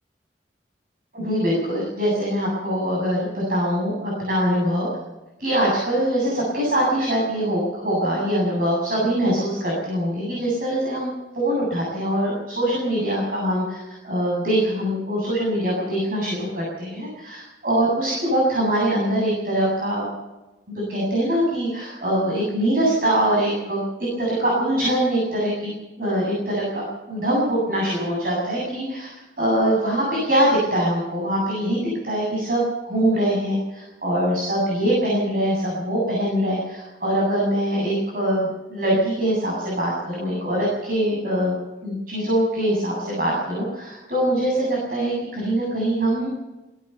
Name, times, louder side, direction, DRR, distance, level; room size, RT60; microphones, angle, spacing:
voice 1, 1.1-4.9 5.4-20.1 20.7-25.7 26.0-41.5 41.8-46.3, right 1 dB, 55° right, -3 dB, 7.9 m, -23 dB
20.5 x 18.5 x 6.9 m, 1.1 s
head